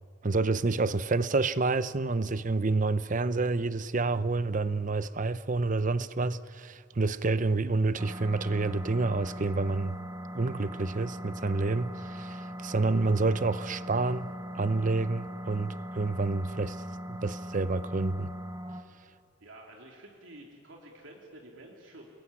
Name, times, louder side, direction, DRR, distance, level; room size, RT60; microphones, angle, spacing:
voice 1, 0.2-10.0 10.3-16.8 17.1-18.3, right 3 dB, 40° right, 0.7 m, -28 dB
sound 1, 8.0-18.8, equal, 25° right, 1.5 m, -40 dB
voice 2, 19.4-22.1, right 1 dB, 75° right, 3.0 m, -50 dB
29.5 x 20.5 x 9.7 m
head